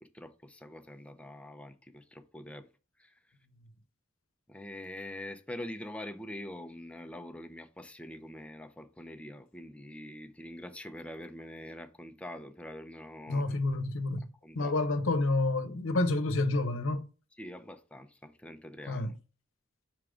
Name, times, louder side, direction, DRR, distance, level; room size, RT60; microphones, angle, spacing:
voice 1, 0.0-2.7 3.0-3.2 4.5-13.6 14.4-14.7 17.4-19.2, left 1 dB, 5° left, 0.5 m, -44 dB
voice 2, 13.3-17.1 18.9-19.1, left 2 dB, 80° left, 0.8 m, -29 dB
5.8 x 3.7 x 4.9 m
head